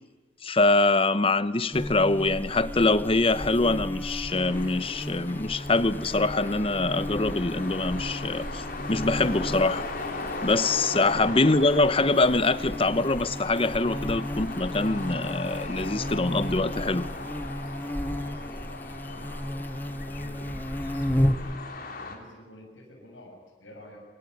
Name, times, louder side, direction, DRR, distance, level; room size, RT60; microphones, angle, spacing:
voice 1, 0.4-9.9 10.4-17.1, left 2 dB, 30° left, 0.9 m, -24 dB
Buzz, 1.7-21.5, left 1 dB, 10° left, 0.9 m, -34 dB
sound 1, 4.3-22.2, left 2 dB, 50° left, 3.4 m, -38 dB
voice 2, 18.1-21.6 22.0-24.0, left 1 dB, 90° left, 7.7 m, -49 dB
25.0 x 23.5 x 9.7 m
head